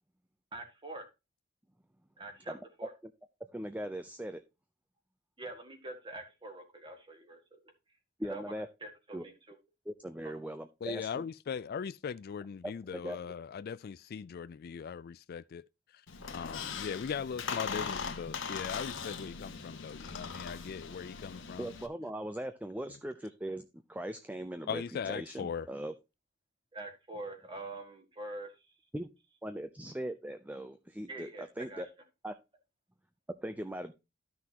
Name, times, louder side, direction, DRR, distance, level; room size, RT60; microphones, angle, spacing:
voice 1, 0.5-1.1 2.2-2.9 5.4-7.6 8.2-8.6 8.8-9.3 10.2-10.3 26.7-28.5 31.1-31.8, right 2 dB, 25° right, 2.0 m, -44 dB
voice 2, 2.5-2.9 3.5-4.4 8.2-8.7 9.1-9.2 9.9-11.2 12.6-13.2 16.2-16.3 16.6-16.7 21.6-25.9 28.9-29.1 29.4-31.9 32.2-32.3 33.4-33.9, right 1 dB, 10° right, 0.6 m, -40 dB
voice 3, 10.8-15.7 15.9-16.0 16.3-21.7 24.7-25.7, left 6 dB, 50° left, 0.4 m, -39 dB
Squeak, 16.1-21.9, left 5 dB, 70° left, 1.3 m, -40 dB
13.0 x 6.0 x 2.8 m
head